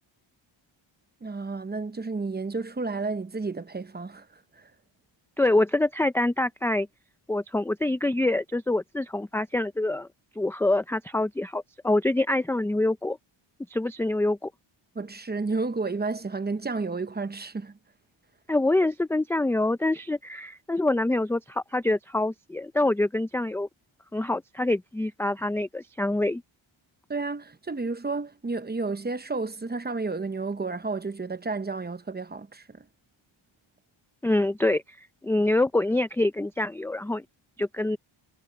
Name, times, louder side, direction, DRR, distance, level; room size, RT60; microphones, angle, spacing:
voice 1, 1.2-4.7 14.9-17.8 27.1-32.9, right 3 dB, 20° right, 0.8 m, -31 dB
voice 2, 5.4-6.9 7.3-10.1 10.4-13.2 13.7-14.5 18.5-23.7 24.1-26.4 34.2-37.2 37.6-38.0, left 2 dB, 5° left, 0.4 m, -25 dB
wide cardioid pair, 120°, 48 cm